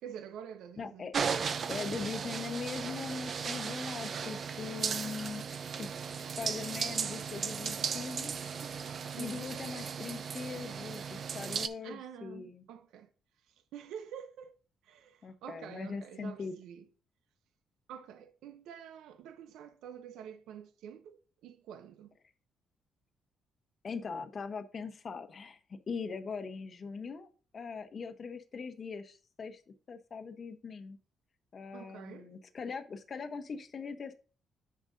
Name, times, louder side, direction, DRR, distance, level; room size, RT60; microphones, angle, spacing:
voice 1, 0.0-1.1 9.1-9.5 11.8-13.1 13.5-14.5 14.8-16.8 17.9-22.2 31.7-32.3, right 8 dB, 85° right, 0.7 m, -48 dB
voice 2, 0.8-1.1 1.7-8.4 9.2-12.7 15.2-16.6 23.8-27.3 27.5-29.6 29.9-31.0 31.5-34.1, left 5 dB, 45° left, 0.9 m, -41 dB
sound 1, 1.1-11.7, right 6 dB, 50° right, 0.6 m, -36 dB
8.7 x 6.3 x 2.6 m
cardioid pair, 90°, 0 cm